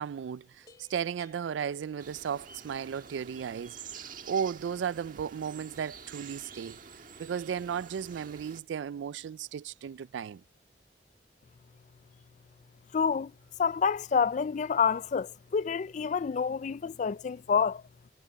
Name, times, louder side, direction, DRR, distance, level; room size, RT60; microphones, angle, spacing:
voice 1, 0.0-3.8 4.0-6.8 7.2-10.4, right 7 dB, 90° right, 0.3 m, -35 dB
sound 1, 0.6-2.7 2.9-3.4 4.2-4.7, left 4 dB, 20° left, 2.0 m, -61 dB
sound 2, 2.0-8.6, right 6 dB, 50° right, 1.5 m, -48 dB
voice 2, 12.9-13.3 13.6-17.8, left 6 dB, 40° left, 0.3 m, -28 dB
head